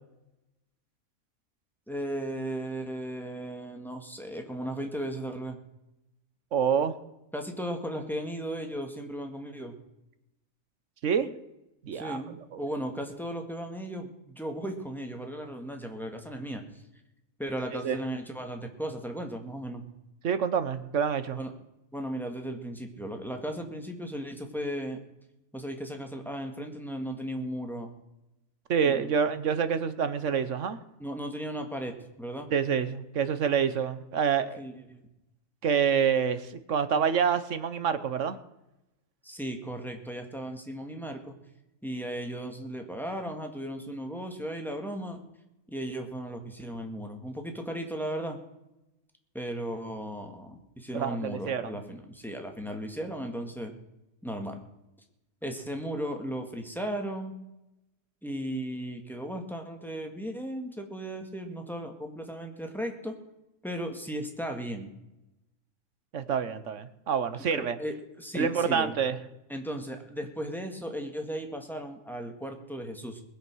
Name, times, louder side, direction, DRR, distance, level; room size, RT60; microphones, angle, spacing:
voice 1, 1.9-5.6 7.3-9.8 11.9-16.6 17.4-19.8 21.4-21.5 21.9-25.0 25.5-28.0 28.8-29.1 31.0-32.5 34.6-35.0 39.2-41.4 41.8-45.2 45.7-48.4 49.3-53.7 54.2-54.6 55.4-57.3 58.2-63.2 63.6-64.9 67.5-69.0 69.5-73.2, right 1 dB, ahead, 3 dB, 1.8 m, -36 dB
voice 2, 6.5-6.9 11.0-11.3 11.8-12.2 12.5-12.6 17.8-18.0 20.2-21.4 28.7-30.8 32.5-34.6 35.6-38.4 50.9-51.8 66.1-67.8 68.3-69.2, right 7 dB, 60° right, 12 dB, 1.2 m, -27 dB
20.5 x 8.2 x 6.2 m, 0.91 s
omnidirectional pair, 1.5 m